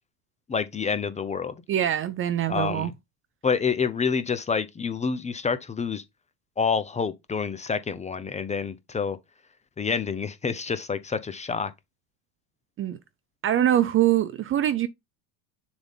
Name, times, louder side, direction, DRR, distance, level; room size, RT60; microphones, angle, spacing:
voice 1, 0.5-1.5 2.5-2.9 3.4-6.0 6.6-9.2 9.8-11.7, left 5 dB, 15° left, 0.6 m, -28 dB
voice 2, 1.7-2.9 12.8-13.0 13.4-14.9, right 11 dB, 30° right, 0.5 m, -23 dB
6.9 x 3.6 x 3.9 m
supercardioid pair, 125°, 45 cm